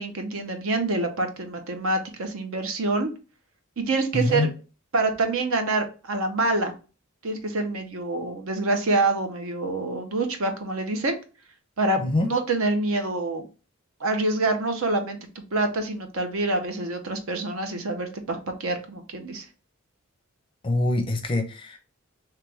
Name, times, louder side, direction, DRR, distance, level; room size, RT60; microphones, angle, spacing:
voice 1, 0.0-3.1 3.8-4.5 4.9-6.7 7.2-11.2 11.8-13.5 14.0-15.2 15.5-19.4, right 2 dB, 65° right, 0.7 m, -26 dB
voice 2, 4.1-4.5 12.0-12.3 20.6-21.8, left 2 dB, 25° left, 0.5 m, -24 dB
3.2 x 3.0 x 3.3 m
head